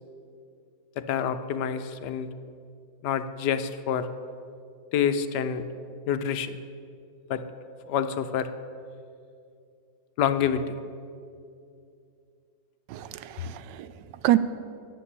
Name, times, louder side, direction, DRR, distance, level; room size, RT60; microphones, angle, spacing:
voice 1, 1.0-2.3 3.0-4.1 4.9-5.6 6.1-6.6 7.3-7.4 7.9-8.5 10.2-10.7, left 8 dB, 75° left, 11 dB, 1.2 m, -27 dB
voice 2, 12.9-14.4, right 14 dB, 85° right, 14 dB, 1.2 m, -27 dB
9.9 x 7.6 x 8.4 m, 2.4 s
omnidirectional pair, 1.9 m